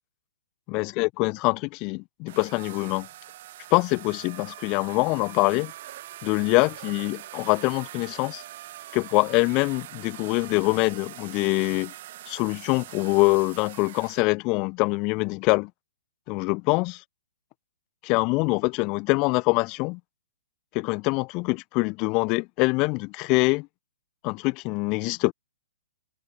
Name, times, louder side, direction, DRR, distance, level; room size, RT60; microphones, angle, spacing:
voice 1, 0.7-3.1 3.7-5.7 6.2-8.4 8.9-11.9 12.3-15.7 16.3-17.0 18.0-20.0 20.7-23.7 24.2-25.3, left 27 dB, 35° left, 0.4 m, -24 dB
sound 1, 2.3-14.2, right 14 dB, 50° right, 3.7 m, -43 dB
hypercardioid pair, 135°, 0 cm